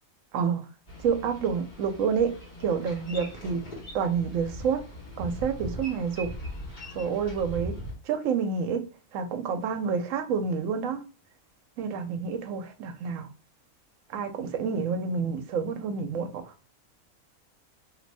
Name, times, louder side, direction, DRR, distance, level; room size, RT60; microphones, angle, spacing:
voice 1, 0.3-0.7 1.0-2.3 2.6-3.6 3.9-4.8 5.2-6.3 6.9-7.7 8.0-8.8 9.1-11.0 11.8-13.3 14.1-16.5, right 6 dB, 70° right, 0.9 m, -28 dB
Boat Water vehicle, 0.9-7.9, equal, 35° left, 1.2 m, -40 dB
2.7 x 2.5 x 3.2 m
omnidirectional pair, 1.5 m